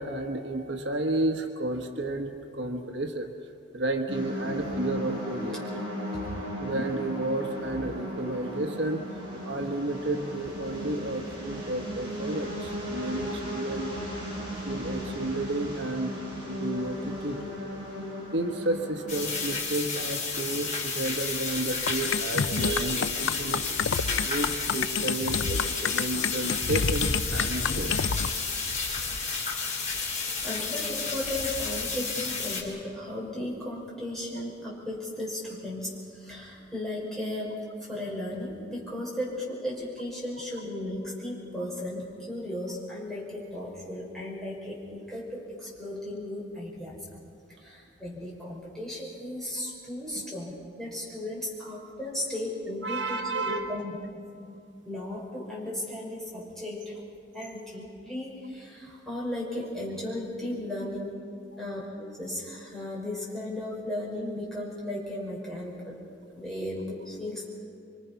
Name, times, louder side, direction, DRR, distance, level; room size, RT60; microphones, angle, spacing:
voice 1, 0.0-3.3 3.7-5.6 6.6-9.0 9.4-13.9 14.5-16.2 16.4-17.5 18.3-23.8 24.2-27.9 30.2-30.4 52.8-53.7, right 2 dB, 65° right, 4 dB, 1.3 m, -31 dB
sound 1, 4.1-19.4, equal, 25° right, 7.9 m, -36 dB
sound 2, 19.1-32.6, left 4 dB, 40° left, 3.6 m, -31 dB
sound 3, 21.9-28.3, left 6 dB, 80° left, 0.5 m, -29 dB
voice 2, 30.4-47.0 47.6-54.0 54.8-57.0 57.3-61.1 61.6-66.0 66.3-67.5, left 1 dB, ahead, -5 dB, 5.9 m, -35 dB
26.5 x 24.5 x 5.8 m, 2.4 s
head